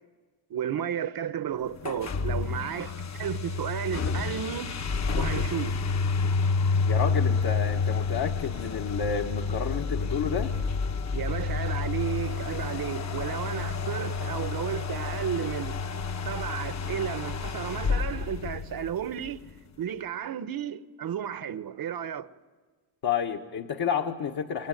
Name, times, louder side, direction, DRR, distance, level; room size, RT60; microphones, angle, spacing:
voice 1, 0.5-4.7 5.2-5.8 11.1-15.8 16.2-19.4 19.8-22.3, right 9 dB, 50° right, 1.2 m, -33 dB
sound 1, 1.8-19.3, left 4 dB, 40° left, 1.2 m, -29 dB
voice 2, 6.8-10.5 23.0-24.7, left 7 dB, 55° left, 1.6 m, -30 dB
29.5 x 20.5 x 9.3 m
cardioid pair, 90°, 44 cm